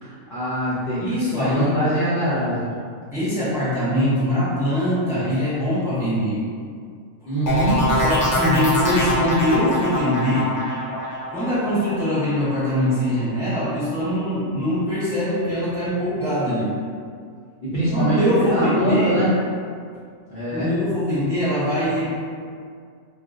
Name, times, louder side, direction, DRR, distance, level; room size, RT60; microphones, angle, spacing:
voice 1, 0.0-2.7 7.2-7.8 17.6-18.2 18.5-19.3 20.3-20.7, right 1 dB, 50° left, -12 dB, 0.7 m, -23 dB
voice 2, 1.0-1.8 3.1-6.4 8.0-10.6 11.3-16.7 17.9-19.2 20.5-22.1, equal, ahead, -12 dB, 1.1 m, -22 dB
sound 1, 7.5-13.1 13.5-13.9, equal, 65° left, 1.1 m, -24 dB
2.4 x 2.3 x 3.6 m, 2.1 s
omnidirectional pair, 1.3 m